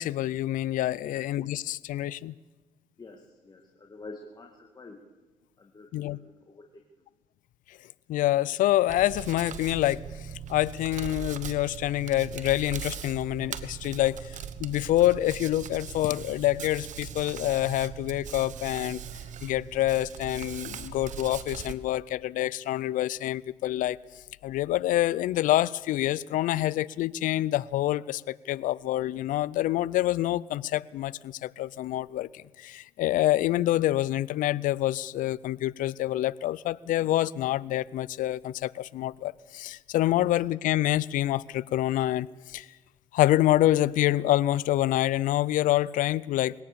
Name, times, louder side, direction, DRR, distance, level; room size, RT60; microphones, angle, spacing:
voice 1, 0.0-2.3 5.9-6.2 8.1-19.0 19.4-24.0 24.4-42.7 43.1-46.5, left 14 dB, 80° left, 22 dB, 0.5 m, -27 dB
voice 2, 3.0-5.0 5.6-6.8, left 3 dB, 30° left, 1 dB, 2.3 m, -47 dB
Hands, 8.9-21.7, right 8 dB, 65° right, 1.3 m, -40 dB
22.0 x 17.5 x 7.0 m, 1.2 s
supercardioid pair, 70°, 14 cm